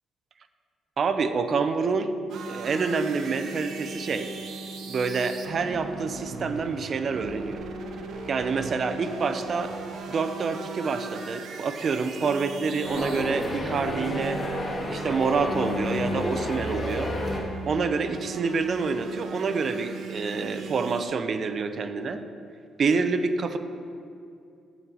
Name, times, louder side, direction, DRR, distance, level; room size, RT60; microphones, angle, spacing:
voice 1, 1.0-2.1 2.5-4.3 4.9-7.6 8.3-9.7 10.1-14.4 14.9-17.1 17.7-22.2 22.8-23.6, right 4 dB, 50° right, 9 dB, 0.7 m, -27 dB
sound 1, 2.3-21.0, right 4 dB, 70° right, 1.0 m, -39 dB
sound 2, 12.8-17.4, left 1 dB, 35° left, 2.6 m, -30 dB
14.0 x 8.4 x 3.1 m, 2.4 s
cardioid pair, 90°, 0 cm